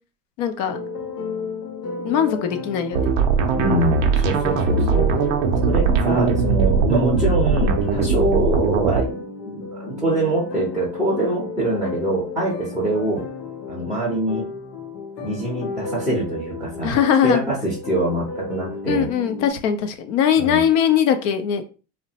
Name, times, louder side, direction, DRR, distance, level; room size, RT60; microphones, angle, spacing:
voice 1, 0.4-0.8 2.0-3.1 16.8-17.4 18.8-21.6, left 8 dB, 50° left, 8 dB, 0.6 m, -20 dB
sound 1, 0.7-19.5, left 4 dB, 75° left, 0.9 m, -33 dB
sound 2, 2.9-9.1, right 5 dB, 45° right, 0.5 m, -20 dB
voice 2, 3.5-5.1 5.7-13.2 13.7-14.5 15.2-17.0 17.2-19.1 20.4-20.6, right 2 dB, ahead, -6 dB, 0.6 m, -24 dB
3.0 x 2.1 x 2.8 m, 0.35 s
supercardioid pair, 130°, 49 cm